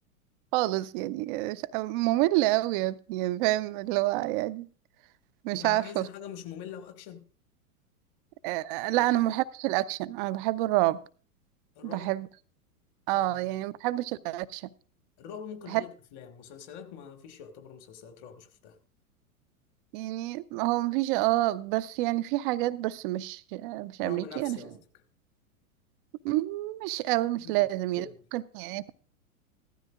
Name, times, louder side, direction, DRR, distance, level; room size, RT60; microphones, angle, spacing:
voice 1, 0.5-4.7 5.4-6.1 8.4-11.0 11.8-12.3 13.1-14.7 15.7-15.8 19.9-24.6 26.2-28.0 28.3-28.9, right 17 dB, 40° right, 0.5 m, -28 dB
voice 2, 5.5-7.3 8.9-9.1 11.8-12.1 13.1-13.4 15.2-18.8 24.0-24.8 27.4-27.7 28.0-28.1, left 8 dB, 45° left, 1.9 m, -44 dB
15.5 x 13.0 x 2.4 m
figure-of-eight pair, 100°, 44 cm